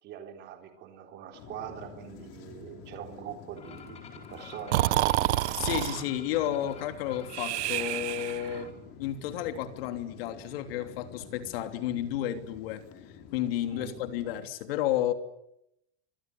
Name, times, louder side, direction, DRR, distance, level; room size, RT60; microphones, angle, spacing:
voice 1, 0.0-5.3 13.7-14.0, right 9 dB, 30° right, 4 dB, 4.0 m, -43 dB
sound 1, 1.3-14.4, left 7 dB, 40° left, 4.8 m, -49 dB
sound 2, 3.6-8.7, left 6 dB, 20° left, 4.7 m, -50 dB
Breathing, 4.7-6.0 7.3-8.6, right 16 dB, 75° right, 1.0 m, -28 dB
voice 2, 5.6-8.7 9.0-12.8 13.3-15.1, left 11 dB, 55° left, 7 dB, 3.2 m, -32 dB
28.5 x 25.5 x 8.1 m, 0.81 s
supercardioid pair, 175°, 34 cm